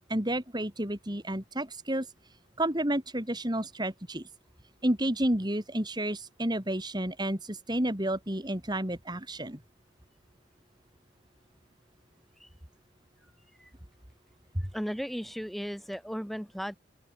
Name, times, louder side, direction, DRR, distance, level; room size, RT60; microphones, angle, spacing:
voice 1, 0.1-2.1 2.6-4.2 4.8-9.6, right 1 dB, 20° right, 3.6 m, -30 dB
voice 2, 14.7-16.8, equal, ahead, 7.3 m, -36 dB
open air
head